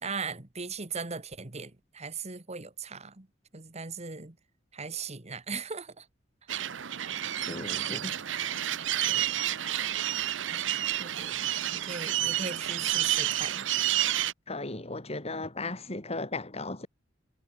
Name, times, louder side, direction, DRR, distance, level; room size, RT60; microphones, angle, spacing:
voice 1, 0.0-3.3 3.5-4.4 4.7-6.0 9.0-9.3 11.0-11.5 11.7-13.7, right 5 dB, 35° right, 1.7 m, -38 dB
sound 1, 6.5-14.3, right 12 dB, 80° right, 0.8 m, -30 dB
voice 2, 7.5-8.2 8.4-8.7 14.5-16.9, left 2 dB, 35° left, 2.9 m, -36 dB
head